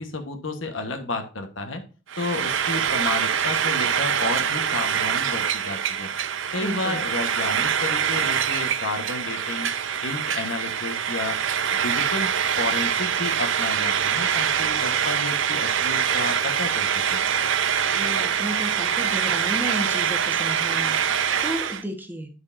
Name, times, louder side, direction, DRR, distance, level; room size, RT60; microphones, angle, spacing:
voice 1, 0.0-1.8 2.2-6.1 6.5-9.7 10.0-11.4 11.8-12.3 12.6-17.2, left 2 dB, 70° left, 5 dB, 1.4 m, -31 dB
Frying (food), 2.1-21.8, right 8 dB, 65° right, 0.7 m, -24 dB
voice 2, 6.6-7.0 17.9-22.3, equal, 10° right, 4 dB, 1.3 m, -33 dB
9.8 x 6.5 x 2.6 m, 0.35 s
head